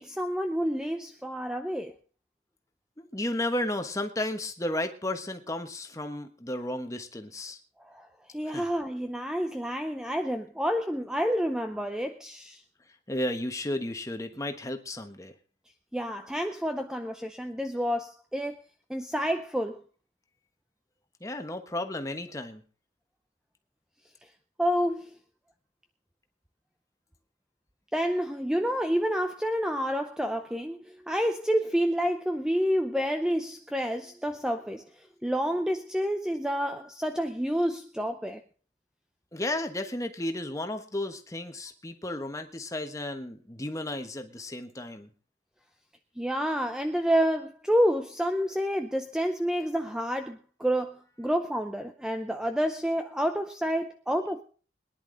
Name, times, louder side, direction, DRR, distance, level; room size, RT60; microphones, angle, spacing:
voice 1, 0.0-1.9 7.8-8.1 8.3-12.6 15.9-18.6 18.9-19.8 24.6-25.2 27.9-38.4 46.2-54.4, equal, 5° right, 0.6 m, -29 dB
voice 2, 3.0-7.6 8.5-8.6 13.1-15.3 21.2-22.6 39.3-45.1, left 1 dB, 20° left, 1.2 m, -33 dB
21.5 x 10.5 x 3.9 m
head